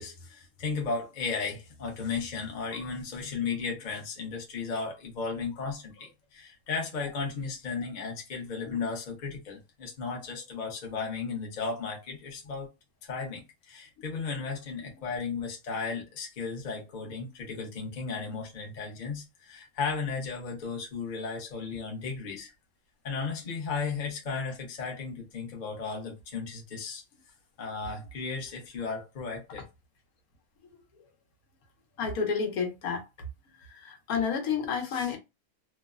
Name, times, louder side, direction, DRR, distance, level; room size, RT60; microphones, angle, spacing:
voice 1, 0.0-12.7 13.0-22.5 23.0-27.0 27.6-29.6, left 5 dB, 40° left, 0.8 m, -35 dB
voice 2, 32.0-33.0 33.5-35.2, left 6 dB, 80° left, 1.2 m, -31 dB
3.0 x 2.0 x 2.3 m
omnidirectional pair, 1.5 m